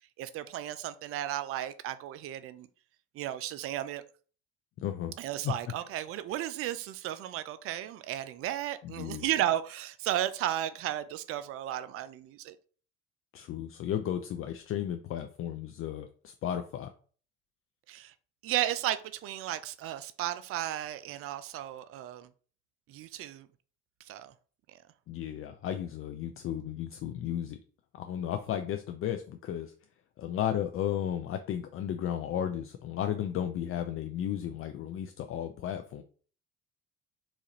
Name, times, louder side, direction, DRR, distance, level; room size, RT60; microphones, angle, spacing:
voice 1, 0.2-2.7 3.1-4.0 5.2-12.6 17.9-18.1 18.4-22.3 22.9-23.5 24.0-24.3 24.7-24.8, right 12 dB, 45° right, 0.4 m, -34 dB
voice 2, 4.8-5.1 5.4-5.5 8.8-9.3 13.3-16.9 25.1-27.6 28.0-29.7 30.2-36.0, left 10 dB, 45° left, 0.4 m, -34 dB
4.0 x 2.5 x 2.9 m
hypercardioid pair, 70°, 32 cm